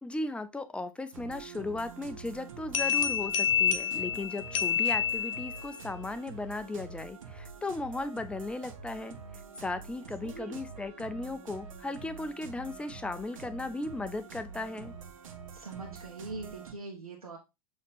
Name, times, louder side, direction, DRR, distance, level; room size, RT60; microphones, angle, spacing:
voice 1, 0.0-9.2 9.6-14.9, left 2 dB, 5° left, 0.4 m, -36 dB
sound 1, 1.1-16.7, right 5 dB, 65° right, 0.9 m, -46 dB
sound 2, 2.7-5.7, left 9 dB, 45° left, 0.7 m, -28 dB
voice 2, 10.2-10.6 15.5-17.4, right 3 dB, 85° right, 1.2 m, -42 dB
6.6 x 3.0 x 2.5 m
figure-of-eight pair, 90°, 18 cm